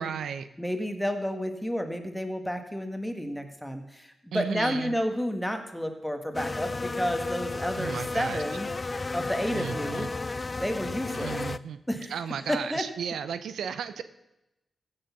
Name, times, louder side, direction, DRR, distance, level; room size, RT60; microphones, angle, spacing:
voice 1, 0.0-0.5 4.3-4.9 7.8-8.4 9.5-10.1 11.1-11.8 12.1-14.0, right 7 dB, 90° right, 12 dB, 0.6 m, -34 dB
voice 2, 0.6-8.7 9.1-10.1 10.6-11.4 11.9-12.1 12.5-12.9, equal, 5° left, 5 dB, 1.7 m, -31 dB
sound 1, 6.3-11.6, left 3 dB, 35° left, 0.4 m, -33 dB
15.0 x 6.6 x 5.9 m, 0.90 s
cardioid pair, 60°, 0 cm